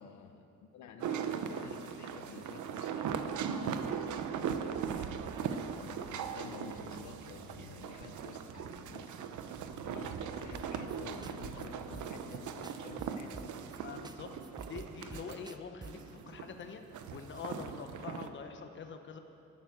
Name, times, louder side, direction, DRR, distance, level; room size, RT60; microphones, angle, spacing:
voice 1, 0.0-4.1 4.9-9.2 9.5-13.7, left 6 dB, 75° left, 7 dB, 1.0 m, -51 dB
sound 1, 1.0-15.6 15.8-18.3, right 7 dB, 85° right, 0.9 m, -39 dB
sound 2, 10.5-11.0 11.2-11.3 11.6-11.7 11.9-12.4 12.6-13.8 14.0-14.2 14.4-16.1, right 4 dB, 15° right, 0.4 m, -48 dB
voice 2, 13.8-14.4 14.6-16.8 17.1-19.2, left 6 dB, 40° left, 6 dB, 1.0 m, -45 dB
12.0 x 11.5 x 7.9 m, 2.9 s
cardioid pair, 150°, 29 cm